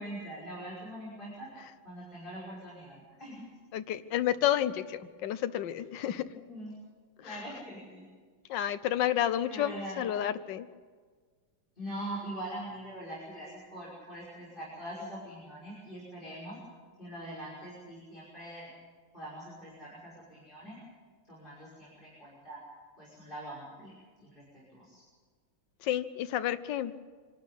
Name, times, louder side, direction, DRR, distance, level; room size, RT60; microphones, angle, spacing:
voice 1, 0.0-1.5 1.8-3.4 6.3-6.7 7.2-8.1 9.2-10.0 11.7-16.6 17.0-18.7 19.1-20.8 21.3-22.6 23.0-25.0, right 1 dB, 25° left, -7 dB, 6.2 m, -43 dB
voice 2, 3.7-6.2 7.2-7.4 8.5-10.7 25.8-26.9, left 11 dB, 70° left, 11 dB, 1.5 m, -30 dB
25.5 x 12.5 x 9.4 m, 1.5 s
omnidirectional pair, 2.1 m